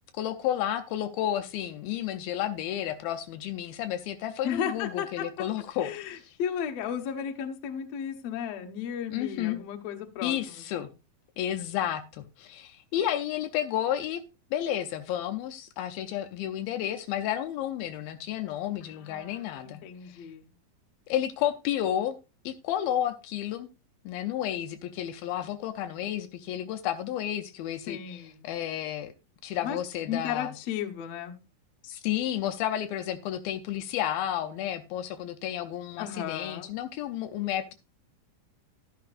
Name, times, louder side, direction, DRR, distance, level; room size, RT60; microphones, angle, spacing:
voice 1, 0.2-5.9 9.1-9.6 10.2-10.9 11.4-14.2 14.5-20.2 21.1-22.2 22.4-23.7 24.1-29.1 29.4-30.6 32.0-37.7, left 11 dB, 80° left, 2.4 m, -31 dB
voice 2, 4.4-5.3 5.8-10.6 18.8-20.5 27.9-28.5 29.6-29.8 30.1-31.4 36.0-36.7, left 8 dB, 65° left, 1.7 m, -35 dB
12.0 x 11.5 x 2.5 m
omnidirectional pair, 4.4 m